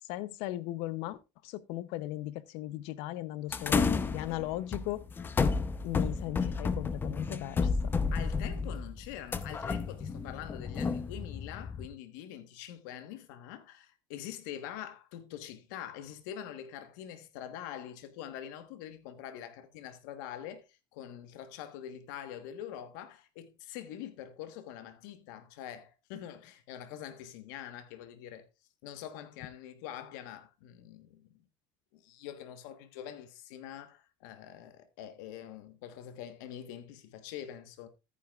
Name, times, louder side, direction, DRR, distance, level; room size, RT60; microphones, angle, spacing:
voice 1, 0.1-1.2 1.4-5.0 5.8-7.7, left 15 dB, 75° left, 0.7 m, -37 dB
sound 1, 3.5-11.9, left 4 dB, 20° left, 0.8 m, -32 dB
voice 2, 8.1-28.5 28.8-31.3 31.9-37.9, left 10 dB, 90° left, 1.3 m, -44 dB
14.0 x 9.7 x 2.4 m
cardioid pair, 145°, 10 cm